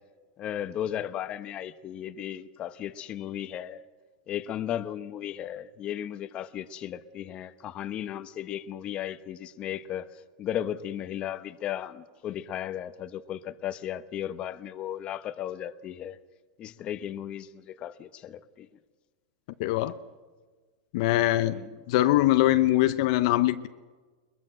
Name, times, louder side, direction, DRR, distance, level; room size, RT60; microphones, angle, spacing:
voice 1, 0.4-3.8 4.3-10.1 10.4-16.2 16.6-18.7 21.5-21.7, left 11 dB, 30° left, 11 dB, 1.0 m, -35 dB
voice 2, 19.6-20.0 20.9-21.6 21.9-23.7, left 16 dB, 55° left, 10 dB, 0.8 m, -22 dB
22.0 x 21.5 x 7.6 m, 1.4 s
supercardioid pair, 140°, 3 cm